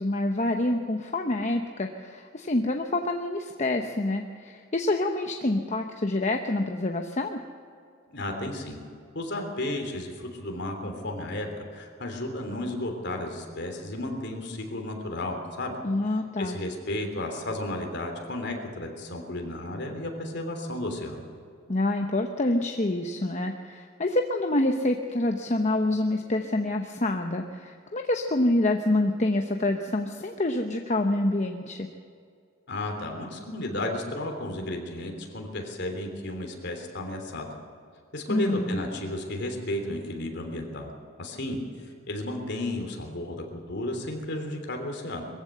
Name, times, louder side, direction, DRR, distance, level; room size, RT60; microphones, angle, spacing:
voice 1, 0.0-7.4 15.8-16.6 21.7-31.9 38.3-38.8, left 2 dB, 35° left, 4 dB, 0.9 m, -27 dB
voice 2, 8.1-8.8 9.1-15.8 16.4-21.2 32.7-37.5 38.1-40.9 41.2-41.6 42.1-45.2, left 1 dB, 55° left, 3 dB, 3.3 m, -33 dB
22.0 x 15.0 x 7.9 m, 2.3 s
head